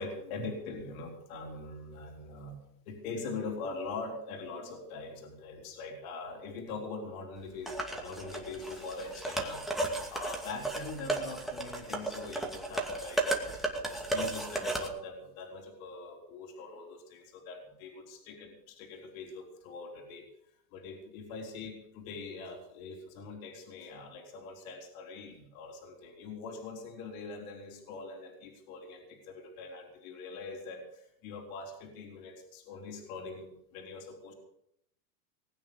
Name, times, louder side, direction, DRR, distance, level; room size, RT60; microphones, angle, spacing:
voice 1, 0.0-2.6 2.9-20.2 20.7-34.3, left 3 dB, 55° left, 2 dB, 4.2 m, -43 dB
sound 1, 7.7-14.9, right 2 dB, ahead, 2.3 m, -34 dB
20.0 x 9.0 x 7.0 m, 0.74 s
supercardioid pair, 140°, 49 cm